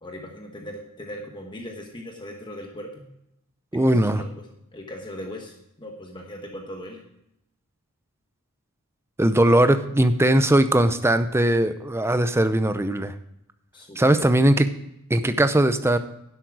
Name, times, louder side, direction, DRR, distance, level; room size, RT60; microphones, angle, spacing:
voice 1, 0.0-3.0 3.9-4.5 4.7-7.0 13.7-14.4, equal, 20° left, 2 dB, 1.2 m, -39 dB
voice 2, 3.7-4.2 9.2-13.1 14.0-14.7 15.1-16.0, right 1 dB, 10° right, 10 dB, 0.6 m, -19 dB
11.0 x 8.0 x 4.7 m, 0.82 s
head